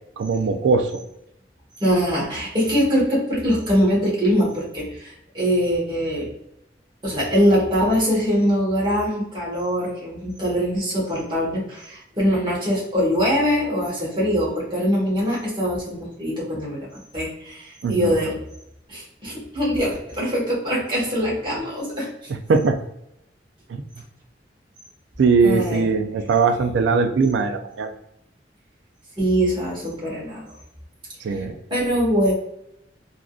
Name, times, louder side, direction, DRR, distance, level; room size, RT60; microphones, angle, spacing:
voice 1, 0.2-0.9 17.8-18.1 22.5-22.8 25.2-27.9 31.2-31.6, right 4 dB, 85° right, 7 dB, 0.3 m, -20 dB
voice 2, 1.8-6.3 7.0-16.9 17.1-18.3 18.9-22.3 25.4-25.9 29.2-30.6 31.3-32.3, equal, 25° right, -5 dB, 1.2 m, -23 dB
3.5 x 2.4 x 2.3 m, 0.80 s
head